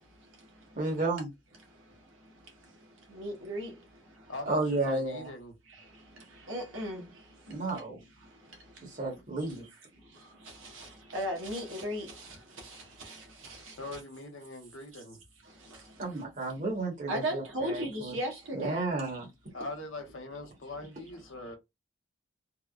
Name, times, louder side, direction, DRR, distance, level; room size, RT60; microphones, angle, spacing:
voice 1, 0.8-1.3 4.5-5.3 7.5-8.0 8.8-9.6 16.0-18.1 18.5-19.3, right 2 dB, 40° right, 1.2 m, -32 dB
voice 2, 3.2-3.7 6.5-7.0 11.1-12.0 17.1-18.9, equal, 80° right, 1.1 m, -34 dB
voice 3, 4.3-5.5 13.8-15.2 19.5-21.6, left 2 dB, 75° left, 1.0 m, -42 dB
3.3 x 2.1 x 2.4 m
head